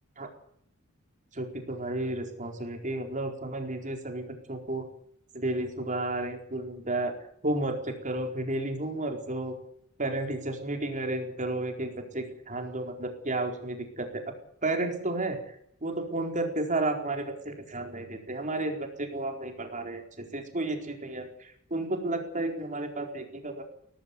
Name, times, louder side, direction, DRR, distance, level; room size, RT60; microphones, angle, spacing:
voice 1, 1.3-4.8 5.3-7.1 7.4-9.6 10.0-14.2 14.6-15.4 15.8-23.6, right 2 dB, 35° right, 4 dB, 4.5 m, -32 dB
18.0 x 15.5 x 9.6 m, 0.68 s
head